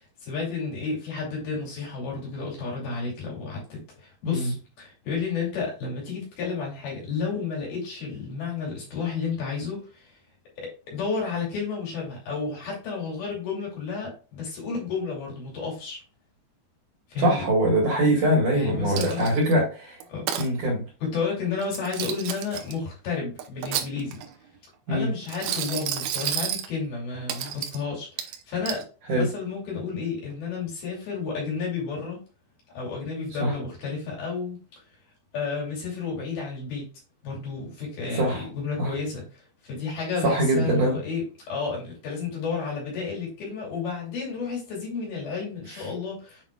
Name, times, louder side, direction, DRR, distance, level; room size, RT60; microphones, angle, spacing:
voice 1, 0.2-10.1 10.6-16.0 17.1-17.5 18.5-19.3 20.1-20.2 21.0-24.2 24.9-28.8 29.1-32.2 32.7-34.6 35.3-36.8 37.2-46.4, left 5 dB, 55° left, -3 dB, 4.3 m, -31 dB
voice 2, 17.2-20.0 20.4-20.8 24.9-25.1 29.1-29.3 33.4-33.5 38.1-38.4 38.8-38.9 40.2-41.0 45.7-45.8, right 1 dB, 55° right, -2 dB, 2.7 m, -23 dB
Coin (dropping), 19.0-19.5 20.0-20.5 21.6-22.7 23.4-24.3 25.3-26.7 27.3-27.8 28.2-28.8, right 10 dB, 75° right, 2.5 m, -31 dB
8.3 x 5.8 x 2.4 m, 0.33 s
omnidirectional pair, 5.4 m